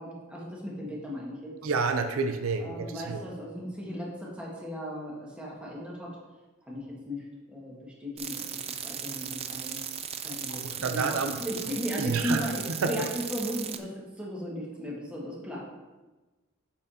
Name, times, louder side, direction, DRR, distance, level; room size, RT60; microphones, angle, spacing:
voice 1, 0.0-1.5 2.6-6.1 6.7-8.4 8.8-9.8 10.2-15.6, equal, 5° right, -4 dB, 1.6 m, -36 dB
voice 2, 1.6-3.2 10.6-11.4 12.0-13.1, right 4 dB, 85° right, 6 dB, 0.6 m, -29 dB
sound 1, 8.2-13.8, right 8 dB, 30° right, 0.4 m, -37 dB
8.4 x 6.7 x 2.8 m, 1.2 s
head